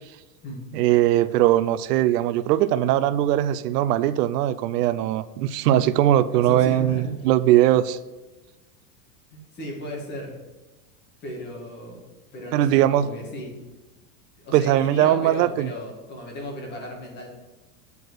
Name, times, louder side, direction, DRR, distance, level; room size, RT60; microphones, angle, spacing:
voice 1, 0.7-8.0 12.5-13.1 14.5-15.7, right 13 dB, 80° right, 15 dB, 0.6 m, -20 dB
voice 2, 6.3-7.3 9.3-10.4 11.2-12.0 12.3-13.6 14.4-17.3, equal, 20° left, -2 dB, 1.9 m, -35 dB
8.2 x 4.7 x 6.2 m, 1.1 s
supercardioid pair, 165°, 47 cm